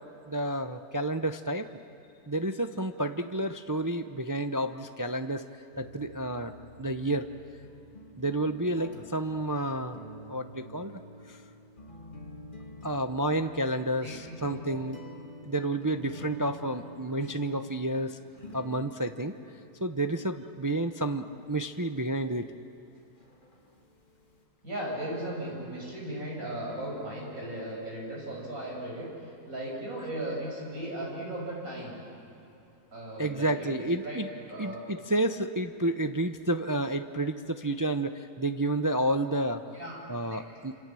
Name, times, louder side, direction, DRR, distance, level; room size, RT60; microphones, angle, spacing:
voice 1, 0.3-1.7 2.3-5.4 5.8-7.3 8.2-10.0 10.3-11.0 11.3-11.4 12.8-15.0 15.4-18.2 18.5-19.4 19.8-22.5 33.2-34.3 34.6-39.6 40.1-40.8, right 1 dB, 30° right, 8 dB, 0.3 m, -30 dB
sound 1, 5.7-24.4, equal, 30° left, 2.5 m, -49 dB
voice 2, 24.6-29.1 29.5-32.0 32.9-34.2 34.5-34.8 39.7-40.0 40.3-40.4, right 1 dB, 60° right, -2 dB, 7.2 m, -37 dB
27.5 x 27.5 x 7.6 m, 2.8 s
omnidirectional pair, 1.6 m